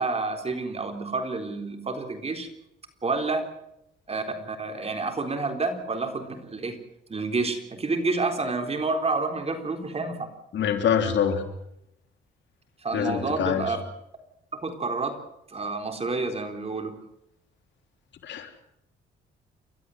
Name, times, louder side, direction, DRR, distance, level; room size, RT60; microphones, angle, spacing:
voice 1, 0.0-2.5 3.0-3.5 4.1-6.8 7.1-10.3 12.8-13.8 14.5-15.2 15.5-17.0, right 3 dB, 30° right, 6 dB, 3.9 m, -29 dB
voice 2, 10.5-11.4 12.9-13.8 18.2-18.6, left 8 dB, 65° left, 5 dB, 3.3 m, -25 dB
29.5 x 13.0 x 7.9 m, 0.83 s
cardioid pair, 90°, 20 cm